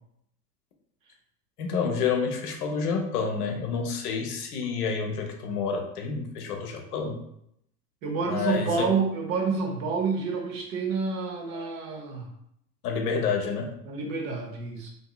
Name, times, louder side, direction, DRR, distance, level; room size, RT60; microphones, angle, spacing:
voice 1, 1.6-7.2 8.2-8.9 12.8-13.7, left 5 dB, 65° left, 3 dB, 0.8 m, -29 dB
voice 2, 8.0-12.3 13.8-14.9, right 4 dB, 55° right, 1 dB, 0.9 m, -28 dB
2.8 x 2.7 x 2.3 m, 0.74 s
hypercardioid pair, 95°, 49 cm